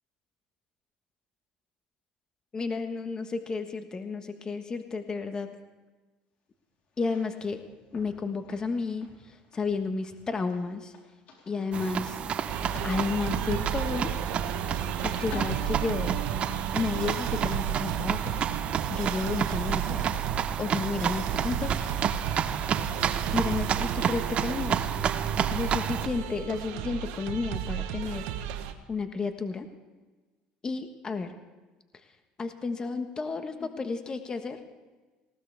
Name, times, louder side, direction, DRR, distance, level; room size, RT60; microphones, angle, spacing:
voice 1, 2.5-5.6 7.0-7.6 7.9-10.9 11.5-12.2 12.8-14.1 15.0-16.2 16.7-18.4 18.9-20.0 20.6-22.0 23.3-24.9 25.5-28.3 28.9-29.7 30.6-31.3 32.4-34.6, left 4 dB, 25° left, 7 dB, 1.4 m, -32 dB
sound 1, 6.9-14.7 15.0-16.6, left 2 dB, 55° left, 3.8 m, -49 dB
sound 2, 11.7-26.1, right 8 dB, 40° right, 0.8 m, -31 dB
sound 3, 12.5-28.7, right 10 dB, 85° right, 1.2 m, -33 dB
19.5 x 17.5 x 3.5 m, 1.3 s
supercardioid pair, 105°, 3 cm